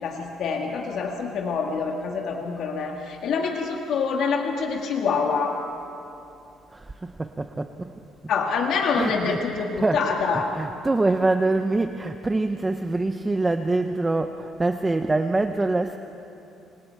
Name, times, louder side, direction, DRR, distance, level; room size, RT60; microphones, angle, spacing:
voice 1, 0.0-5.6 8.3-10.5, left 5 dB, 55° left, 1 dB, 1.7 m, -26 dB
voice 2, 6.7-7.9 8.9-10.1 10.5-16.0, right 2 dB, 15° right, 7 dB, 0.6 m, -25 dB
28.5 x 25.5 x 4.6 m, 2.9 s
cardioid pair, 165°, 0 cm